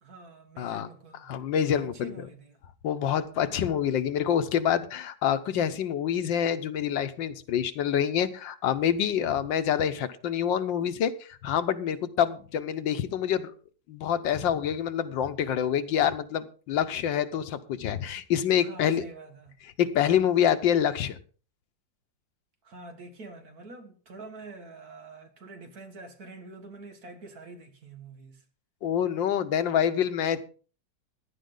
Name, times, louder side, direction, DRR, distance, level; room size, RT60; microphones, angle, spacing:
voice 1, 0.0-1.3 1.7-2.6 18.6-19.6 22.6-28.4, right 3 dB, 55° right, 2.1 m, -46 dB
voice 2, 0.6-0.9 1.3-2.1 2.8-13.5 13.9-19.0 19.8-21.2 28.8-30.4, left 9 dB, 90° left, 1.7 m, -26 dB
15.5 x 11.0 x 3.9 m
omnidirectional pair, 2.0 m